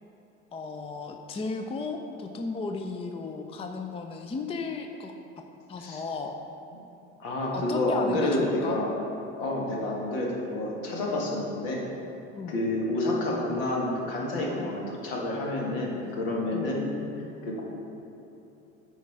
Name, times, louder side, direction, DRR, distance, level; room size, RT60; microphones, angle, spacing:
voice 1, 0.5-5.1 5.7-6.4 7.5-8.8 12.4-12.6 16.5-16.7, left 4 dB, 15° left, 4 dB, 0.5 m, -35 dB
voice 2, 7.2-8.9 9.4-11.8 12.5-17.0 17.4-17.6, left 1 dB, 65° left, -2 dB, 1.8 m, -29 dB
9.1 x 4.8 x 4.5 m, 2.9 s
figure-of-eight pair, 65°, 39 cm